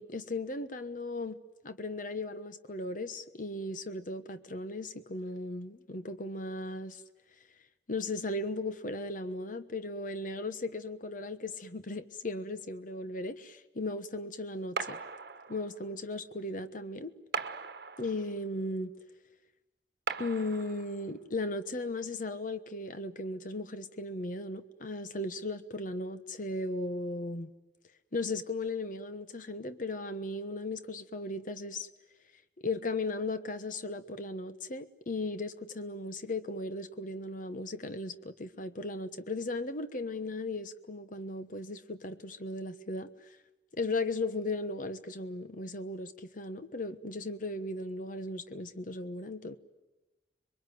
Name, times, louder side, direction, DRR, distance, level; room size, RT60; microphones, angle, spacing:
voice 1, 0.0-1.4 1.6-7.0 7.9-15.0 15.5-17.1 18.0-18.9 20.2-27.5 28.1-31.9 32.6-43.1 43.7-49.6, left 2 dB, 50° left, 1.2 m, -36 dB
sound 1, 14.8-15.9 17.3-18.5 20.1-21.1, right 5 dB, 60° right, 1.3 m, -39 dB
26.5 x 22.5 x 9.4 m
head